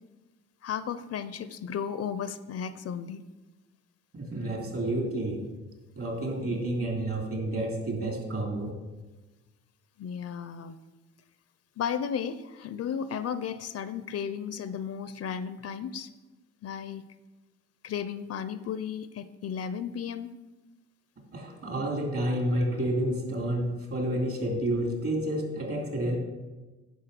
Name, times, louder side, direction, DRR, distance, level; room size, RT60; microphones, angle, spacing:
voice 1, 0.6-3.2 10.0-10.8 11.8-16.1 16.6-17.0 17.8-20.3, left 7 dB, 55° left, 13 dB, 0.6 m, -34 dB
voice 2, 4.1-5.4 5.9-8.7 21.3-26.2, right 1 dB, 50° right, 1 dB, 3.1 m, -30 dB
10.0 x 5.5 x 6.7 m, 1.2 s
cardioid pair, 90°, 30 cm